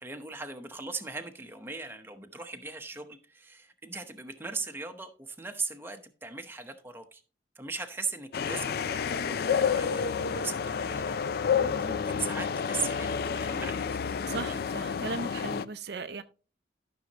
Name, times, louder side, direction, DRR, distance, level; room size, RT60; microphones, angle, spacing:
voice 1, 0.0-7.2 7.5-14.0 14.5-14.6, right 4 dB, 10° right, 0.8 m, -39 dB
sound 1, 8.3-15.6, left 6 dB, 55° left, 0.4 m, -30 dB
voice 2, 14.3-16.2, right 4 dB, 60° right, 0.5 m, -37 dB
12.5 x 6.4 x 2.9 m
head